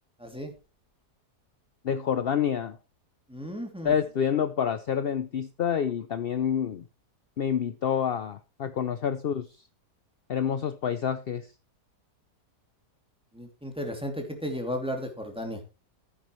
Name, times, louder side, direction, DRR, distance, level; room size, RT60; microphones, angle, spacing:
voice 1, 0.2-0.5 3.3-3.9 13.3-15.6, equal, 5° right, 2.6 m, -34 dB
voice 2, 1.8-2.8 3.8-6.9 7.4-9.5 10.3-11.5, left 8 dB, 55° left, 0.6 m, -28 dB
15.5 x 9.5 x 3.1 m
omnidirectional pair, 1.7 m